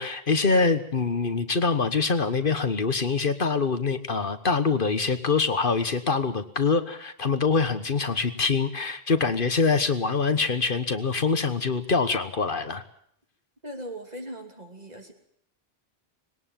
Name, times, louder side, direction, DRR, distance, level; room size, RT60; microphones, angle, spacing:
voice 1, 0.0-12.8, left 4 dB, 55° left, 11 dB, 1.4 m, -24 dB
voice 2, 13.6-15.1, equal, 40° right, 3 dB, 3.4 m, -39 dB
21.0 x 18.5 x 7.4 m, 0.68 s
omnidirectional pair, 1.0 m